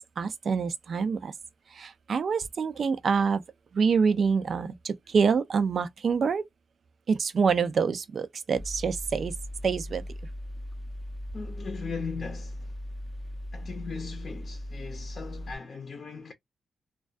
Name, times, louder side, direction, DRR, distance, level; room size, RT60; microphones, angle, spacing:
voice 1, 0.0-1.3 1.7-3.4 3.7-6.4 7.1-9.3 9.6-10.0, right 5 dB, 55° right, 0.4 m, -26 dB
Mechanical fan, 8.6-15.5, left 1 dB, 5° left, 0.6 m, -38 dB
voice 2, 11.3-12.7 13.5-16.3, left 5 dB, 45° left, 0.6 m, -38 dB
2.3 x 2.2 x 2.4 m
cardioid pair, 105°, 0 cm